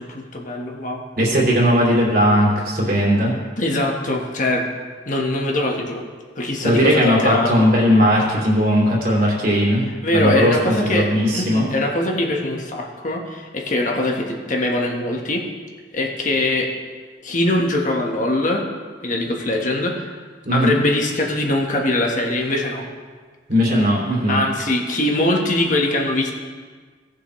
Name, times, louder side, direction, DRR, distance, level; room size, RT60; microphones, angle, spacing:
voice 1, 0.0-1.0 3.6-4.7 5.0-6.0 6.4-7.7 8.1-8.2 10.0-15.4 15.9-16.7 17.2-18.6 19.0-20.1 20.5-22.8 24.3-26.3, left 1 dB, 45° left, 0 dB, 1.5 m, -22 dB
voice 2, 1.1-3.3 6.6-9.8 10.1-10.5 10.8-11.7 20.4-20.8 23.5-24.4, equal, 50° right, -4 dB, 2.8 m, -17 dB
17.5 x 7.1 x 3.2 m, 1.5 s
head